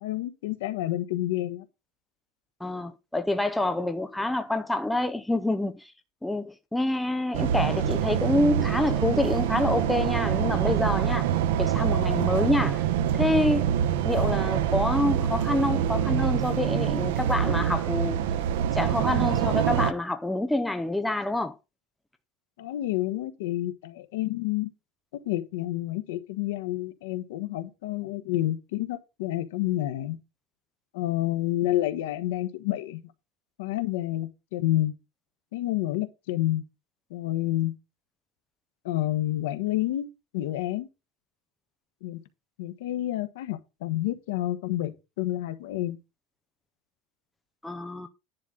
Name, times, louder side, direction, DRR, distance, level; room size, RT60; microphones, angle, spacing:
voice 1, 0.0-1.6 22.6-24.7 25.2-30.2 30.9-33.0 33.6-34.9 35.5-36.6 37.1-37.7 38.8-40.1 40.3-40.9 42.0-42.2 42.6-46.0, left 15 dB, 80° left, 1.3 m, -29 dB
voice 2, 2.6-5.9 6.2-11.3 11.6-12.8 13.1-13.7 14.0-18.2 18.7-21.5 47.6-48.1, left 2 dB, 5° left, 0.5 m, -27 dB
sound 1, 7.3-19.9, right 9 dB, 70° right, 0.8 m, -25 dB
10.5 x 3.8 x 7.2 m
supercardioid pair, 175°, 0 cm